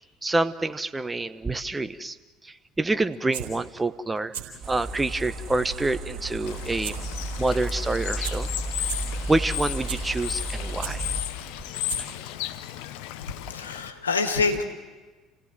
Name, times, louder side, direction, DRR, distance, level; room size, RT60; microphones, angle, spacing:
voice 1, 0.2-2.2 2.4-4.3 4.7-7.0 7.4-8.5 9.3-11.1, right 2 dB, 15° right, 12 dB, 1.0 m, -27 dB
sound 1, 3.1-3.5 4.2-4.4 4.9-5.0 6.8-6.9 7.3-7.4 7.9-8.0 8.2-8.3 8.8-9.0 9.5-10.0 10.5-10.9 11.6-11.7 11.9-12.2 12.6-12.7, right 9 dB, 70° right, 4.0 m, -34 dB
sound 2, 4.6-11.3, right 1 dB, 45° right, 3.7 m, -33 dB
Bird / Water, 6.5-13.9, left 13 dB, 65° left, 0.9 m, -35 dB
voice 2, 13.3-14.7, left 4 dB, 90° left, 5 dB, 1.7 m, -26 dB
29.5 x 17.0 x 7.6 m, 1.3 s
hypercardioid pair, 65°, 0 cm